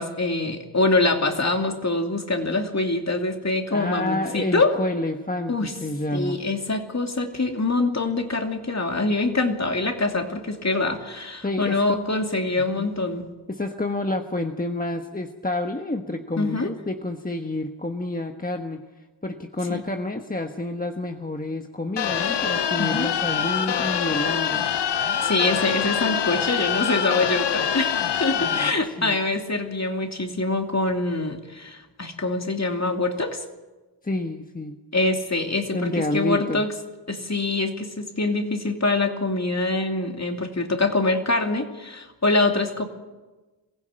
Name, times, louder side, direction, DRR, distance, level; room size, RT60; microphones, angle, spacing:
voice 1, 0.0-4.7 5.5-5.7 6.1-13.2 16.4-16.7 19.7-19.8 22.8-23.1 25.2-33.4 34.9-36.7 37.1-42.9, left 2 dB, 40° left, 4 dB, 2.8 m, -24 dB
voice 2, 3.7-6.4 11.4-11.8 12.6-12.9 13.5-18.8 19.2-24.6 28.3-29.2 34.0-34.8 35.7-36.6, left 2 dB, 20° left, 4 dB, 1.3 m, -29 dB
sound 1, 22.0-28.7, left 8 dB, 90° left, 0.8 m, -25 dB
22.5 x 15.5 x 8.9 m, 1.2 s
cardioid pair, 55°, 41 cm